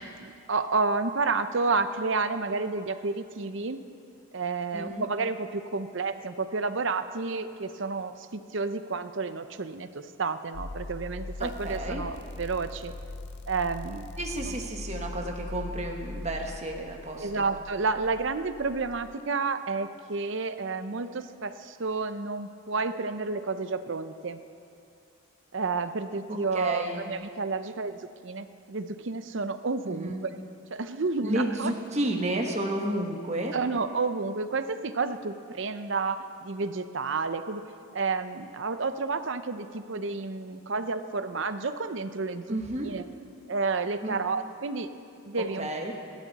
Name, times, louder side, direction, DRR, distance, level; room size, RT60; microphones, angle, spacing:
voice 1, 0.2-3.8 4.3-12.9 13.5-14.1 14.5-14.6 17.2-24.4 25.5-30.3 30.7-31.7 33.5-37.6 37.9-43.0 43.5-44.9 45.3-45.7, right 4 dB, 55° right, 10 dB, 0.7 m, -30 dB
voice 2, 4.7-5.0 11.4-12.0 14.2-17.4 26.3-27.0 29.9-30.2 31.2-33.5 42.5-42.9 44.0-44.2 45.6-45.9, right 1 dB, 30° right, 1 dB, 1.4 m, -31 dB
sound 1, 10.5-19.1, left 2 dB, 50° left, 0.5 m, -40 dB
26.0 x 12.5 x 4.1 m, 2.5 s
head